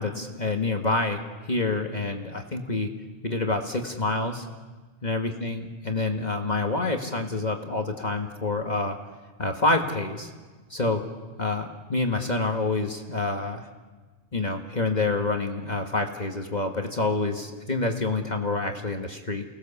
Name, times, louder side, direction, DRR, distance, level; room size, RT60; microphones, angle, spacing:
voice 1, 0.0-2.9 3.2-4.5 5.0-9.0 9.4-10.3 10.7-11.0 11.4-13.7 14.3-19.4, left 2 dB, 35° left, 3 dB, 1.7 m, -27 dB
30.0 x 19.0 x 7.1 m, 1.3 s
omnidirectional pair, 1.4 m